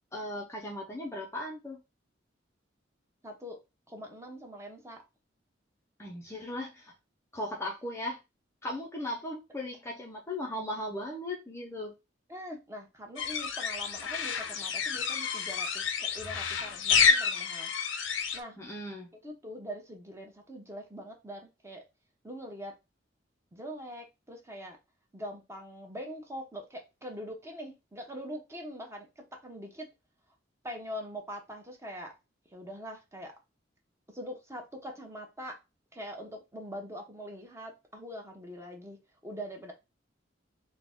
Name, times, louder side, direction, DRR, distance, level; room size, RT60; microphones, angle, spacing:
voice 1, 0.1-1.8 6.0-6.9 7.3-8.2 8.6-12.0 18.6-19.1, left 1 dB, 15° left, 0.6 m, -37 dB
voice 2, 3.2-3.6 3.9-5.0 12.3-17.7 18.3-18.6 19.2-21.8 22.2-22.7 23.5-24.8 25.1-29.9 30.6-32.1 32.5-33.3 34.1-35.5 35.9-39.0 39.2-39.7, equal, 15° right, 0.9 m, -43 dB
sound 1, 13.2-18.4, left 6 dB, 85° left, 0.6 m, -29 dB
3.7 x 2.2 x 3.5 m
head